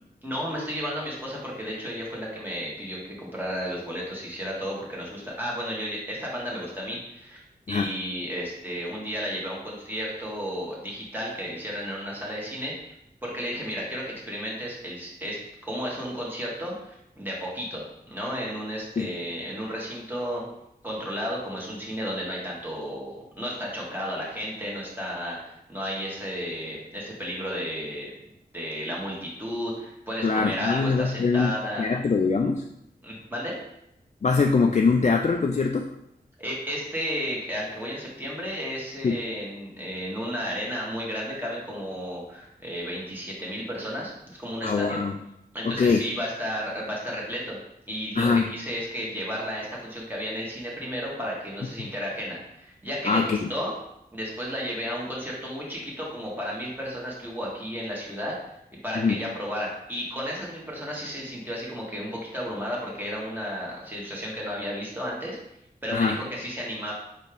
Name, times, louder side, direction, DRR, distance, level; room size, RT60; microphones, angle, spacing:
voice 1, 0.2-7.4 7.7-12.9 13.2-20.4 20.8-28.1 28.5-31.9 33.0-33.5 36.4-45.0 45.5-47.6 47.9-53.7 54.1-58.3 58.8-65.4 65.8-66.9, equal, 10° right, -4 dB, 1.7 m, -33 dB
voice 2, 30.2-32.6 34.2-35.9 39.0-39.2 44.6-45.1 45.6-46.0 48.2-48.5 53.1-53.4 59.0-59.2 65.9-66.2, left 4 dB, 45° left, 3 dB, 0.4 m, -23 dB
4.3 x 3.5 x 3.5 m, 0.81 s
cardioid pair, 50°, 16 cm